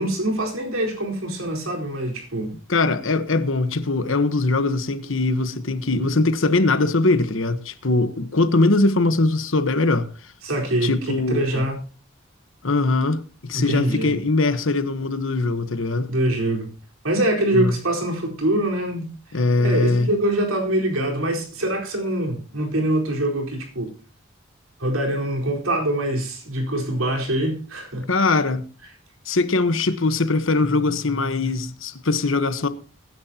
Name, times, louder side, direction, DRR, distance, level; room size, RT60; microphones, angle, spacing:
voice 1, 0.0-2.5 10.4-10.9 11.3-11.8 13.5-14.1 16.1-16.7 17.0-19.1 19.6-23.9 24.8-28.0, right 1 dB, 90° right, 4.3 m, -24 dB
voice 2, 2.7-10.1 10.8-11.7 12.6-16.1 17.5-17.8 19.3-20.1 28.1-28.7 29.3-32.7, left 3 dB, 70° left, 1.2 m, -21 dB
22.0 x 10.5 x 2.9 m
head